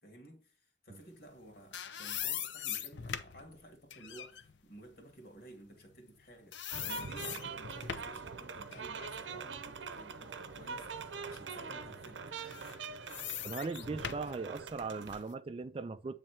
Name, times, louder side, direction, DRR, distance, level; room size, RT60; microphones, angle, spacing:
voice 1, 0.0-12.3, right 1 dB, 55° left, 1.7 m, -54 dB
sound 1, 1.3-6.2 6.5-8.2 8.7-10.7 11.1-11.3 12.3-15.3, left 9 dB, 80° left, 0.6 m, -42 dB
sound 2, 6.7-15.3, right 5 dB, 90° right, 0.7 m, -43 dB
voice 2, 13.4-16.2, right 4 dB, 30° right, 0.3 m, -39 dB
8.6 x 3.2 x 4.3 m
head